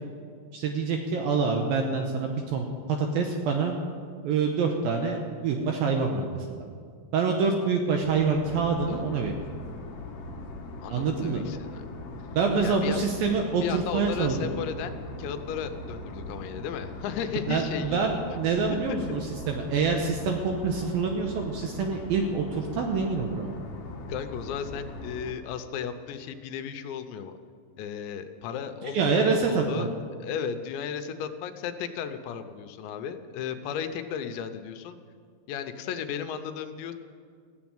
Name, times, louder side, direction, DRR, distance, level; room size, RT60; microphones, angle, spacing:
voice 1, 0.5-3.7 4.2-6.6 7.1-9.3 10.9-11.4 12.4-14.5 17.5-19.2 19.5-23.5 28.9-29.9, right 5 dB, 75° right, 3 dB, 2.2 m, -26 dB
sound 1, 8.0-25.3, left 2 dB, 60° left, 2.6 m, -40 dB
voice 2, 8.9-9.3 10.8-11.8 12.6-13.1 13.6-18.1 18.7-19.0 24.1-27.3 27.8-29.9 30.2-35.0 35.5-36.9, left 7 dB, 85° left, 8 dB, 3.0 m, -35 dB
15.0 x 7.2 x 8.9 m, 2.1 s
omnidirectional pair, 5.1 m